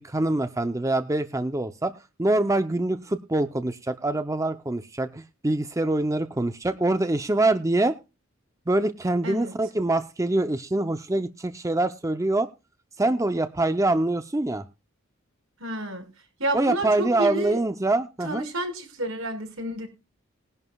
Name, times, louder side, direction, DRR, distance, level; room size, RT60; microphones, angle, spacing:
voice 1, 0.0-1.9 2.2-7.9 8.7-12.5 13.0-14.6 16.5-18.5, right 2 dB, 15° right, 0.5 m, -24 dB
voice 2, 15.6-16.0 16.4-17.6 18.2-19.9, right 1 dB, 80° right, 5.3 m, -30 dB
20.5 x 11.0 x 2.3 m
head